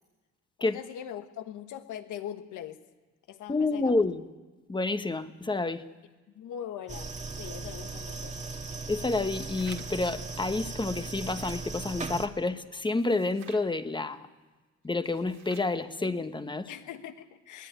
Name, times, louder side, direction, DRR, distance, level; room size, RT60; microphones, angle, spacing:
voice 1, 0.6-2.8 3.3-3.9 6.3-7.1 7.4-8.4 16.7-17.7, left 10 dB, 80° left, 9 dB, 1.5 m, -41 dB
voice 2, 3.5-4.2 4.7-5.8 8.9-14.3 14.8-16.7, left 3 dB, 15° left, 9 dB, 1.3 m, -29 dB
sound 1, 6.9-12.3, right 3 dB, 25° right, 1.7 m, -38 dB
sound 2, 9.3-10.1 10.8-11.7 12.8-13.7 14.9-15.8, right 7 dB, 65° right, 2.3 m, -52 dB
21.0 x 17.0 x 9.4 m, 1.2 s
cardioid pair, 90°, 30 cm